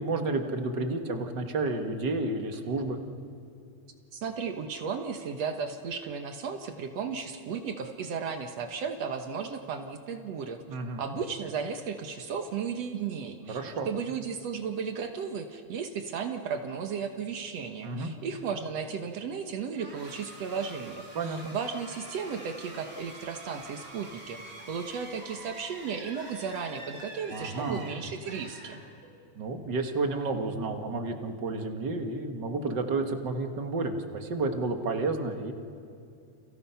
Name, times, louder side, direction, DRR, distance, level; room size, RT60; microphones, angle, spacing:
voice 1, 0.0-3.0 10.7-11.0 13.5-13.9 17.8-18.1 21.1-21.5 27.3-27.9 29.3-35.5, right 3 dB, 45° right, 5 dB, 1.8 m, -31 dB
voice 2, 4.1-10.6 11.0-28.8, right 6 dB, 65° right, 6 dB, 2.2 m, -35 dB
sound 1, 19.8-29.3, right 1 dB, 20° right, 3.3 m, -47 dB
30.0 x 29.0 x 5.8 m, 2.5 s
omnidirectional pair, 3.4 m